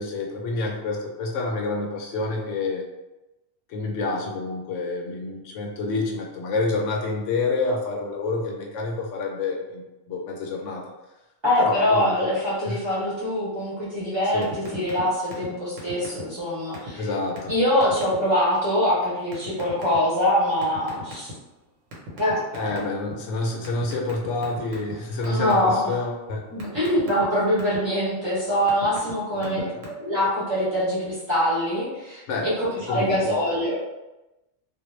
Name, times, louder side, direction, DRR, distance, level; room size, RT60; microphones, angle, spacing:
voice 1, 0.0-2.8 3.7-10.8 11.6-12.3 12.7-12.8 14.3-14.5 16.9-17.5 22.5-26.4 29.3-29.8 32.3-32.5 32.9-33.4, left 3 dB, 80° left, 0 dB, 0.9 m, -28 dB
voice 2, 11.4-17.0 17.5-21.3 22.2-22.4 25.2-26.0 26.5-29.6 29.9-33.7, equal, 25° right, -9 dB, 0.7 m, -24 dB
sound 1, 14.4-15.0 15.3-15.5 15.8-16.4 16.7-16.9 17.4-17.5 17.8-18.2 19.3-20.0 20.6-21.5 21.9-23.1 23.6-24.9 25.2-25.7 26.1-27.8 28.4-29.1 29.4-29.9, equal, 80° right, 1.1 m, -38 dB
2.3 x 2.1 x 3.0 m, 1.0 s
omnidirectional pair, 1.3 m